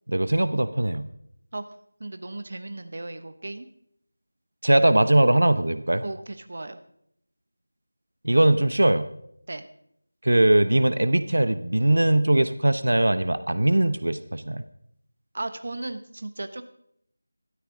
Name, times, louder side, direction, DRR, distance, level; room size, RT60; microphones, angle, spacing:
voice 1, 0.1-1.1 4.6-6.0 8.2-9.1 10.2-14.6, right 1 dB, 85° right, 12 dB, 1.0 m, -20 dB
voice 2, 2.0-3.7 6.0-6.8 9.5-9.6 15.3-16.6, right 2 dB, 50° right, 9 dB, 1.0 m, -35 dB
18.5 x 13.0 x 3.9 m, 0.72 s
figure-of-eight pair, 175°, 0 cm